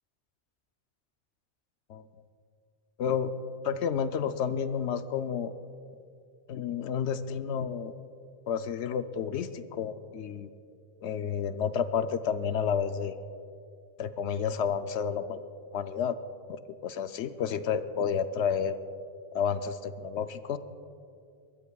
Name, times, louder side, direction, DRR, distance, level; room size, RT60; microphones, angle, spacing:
voice 1, 3.0-3.3 3.6-5.5 6.5-7.9 8.5-10.5 11.0-13.2 14.0-15.5 15.7-16.2 16.5-18.8 19.3-20.6, left 7 dB, 85° left, 11 dB, 0.9 m, -30 dB
21.5 x 20.0 x 2.3 m, 2.4 s
omnidirectional pair, 1.1 m